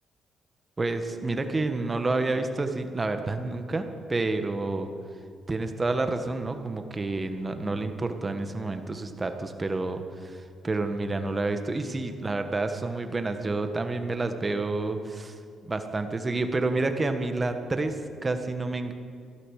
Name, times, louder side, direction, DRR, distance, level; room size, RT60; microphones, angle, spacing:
voice 1, 0.8-4.9 5.5-18.9, right 3 dB, 25° right, 7 dB, 1.5 m, -29 dB
15.5 x 12.0 x 6.5 m, 2.2 s
cardioid pair, 90°, 0 cm